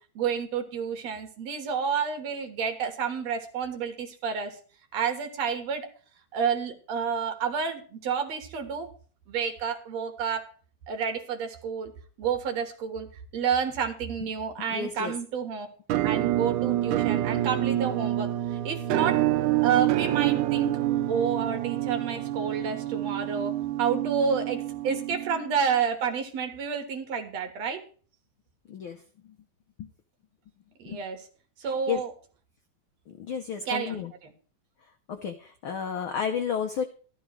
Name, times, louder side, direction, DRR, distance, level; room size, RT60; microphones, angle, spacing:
voice 1, 0.2-4.6 4.9-5.9 6.3-8.9 9.3-10.4 10.9-11.9 12.2-13.1 13.3-15.7 16.0-19.2 19.6-20.8 21.1-27.8 30.8-31.2 31.6-32.1 33.7-34.3, right 6 dB, 65° right, 5 dB, 2.6 m, -30 dB
voice 2, 14.6-15.1 28.7-29.0 29.8-29.9 30.9-31.0 31.6-32.0 33.1-34.1 35.1-36.8, left 7 dB, 85° left, 7 dB, 1.1 m, -32 dB
Musical instrument, 15.9-25.7, right 14 dB, 85° right, 2.1 m, -27 dB
14.0 x 12.0 x 3.2 m, 0.41 s
omnidirectional pair, 3.5 m